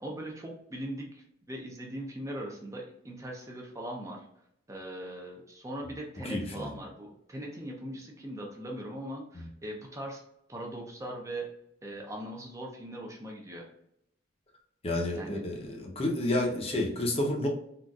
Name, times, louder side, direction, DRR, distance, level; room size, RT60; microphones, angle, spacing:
voice 1, 0.0-4.3 4.7-10.2 10.5-11.5 11.8-13.6 15.1-15.5, right 1 dB, 15° right, 0 dB, 0.5 m, -40 dB
voice 2, 6.2-6.7 14.8-17.5, left 1 dB, 30° left, 0 dB, 0.6 m, -30 dB
3.8 x 2.4 x 2.3 m, 0.76 s
head